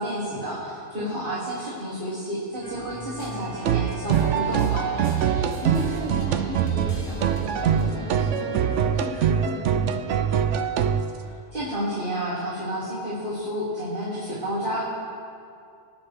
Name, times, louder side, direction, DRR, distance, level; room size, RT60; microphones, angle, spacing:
voice 1, 0.0-4.9 11.2-14.9, equal, 45° right, -9 dB, 2.6 m, -30 dB
sound 1, 2.6-8.7, equal, 15° right, 1.8 m, -39 dB
Relaxing Music, 3.6-11.1, right 8 dB, 80° right, 0.9 m, -23 dB
voice 2, 5.6-10.1, left 1 dB, ahead, -9 dB, 2.7 m, -36 dB
23.5 x 9.7 x 3.4 m, 2.5 s
omnidirectional pair, 1.3 m